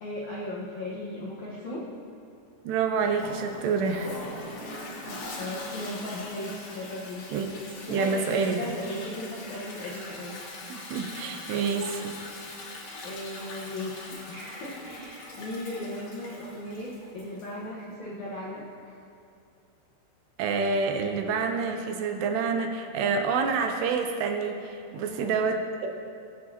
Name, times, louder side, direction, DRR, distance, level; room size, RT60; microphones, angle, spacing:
voice 1, 0.0-1.9 4.5-7.3 7.8-10.4 13.0-19.0 24.9-25.4, left 1 dB, 75° left, -5 dB, 1.7 m, -37 dB
voice 2, 2.6-4.2 7.3-7.6 7.9-8.6 10.7-12.2 20.4-25.9, right 5 dB, 80° right, 4 dB, 2.7 m, -28 dB
Toilet flush, 3.0-17.6, left 2 dB, 55° left, 2.7 m, -42 dB
22.0 x 8.6 x 2.8 m, 2.5 s
omnidirectional pair, 5.1 m